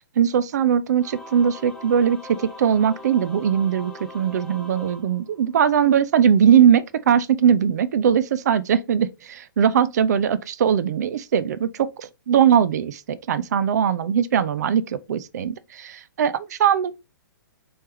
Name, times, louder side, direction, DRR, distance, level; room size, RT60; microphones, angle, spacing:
voice 1, 0.2-16.9, right 8 dB, 50° right, 0.4 m, -20 dB
Singing / Musical instrument, 1.0-5.8, left 1 dB, 5° left, 0.9 m, -42 dB
4.3 x 3.2 x 3.1 m
figure-of-eight pair, 115°, 11 cm